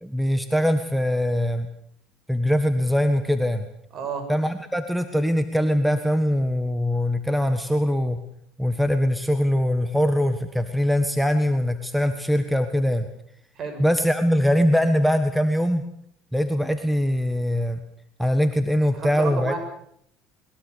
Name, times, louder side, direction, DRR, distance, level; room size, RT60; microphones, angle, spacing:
voice 1, 0.0-1.7 2.3-3.6 4.3-8.2 8.6-13.1 13.8-15.8 16.3-17.8 18.2-19.6, equal, ahead, 9 dB, 1.5 m, -22 dB
voice 2, 3.9-4.3 13.6-13.8 18.9-19.6, right 5 dB, 45° right, 7 dB, 6.6 m, -31 dB
21.5 x 21.5 x 6.9 m, 0.67 s
cardioid pair, 115°, 0 cm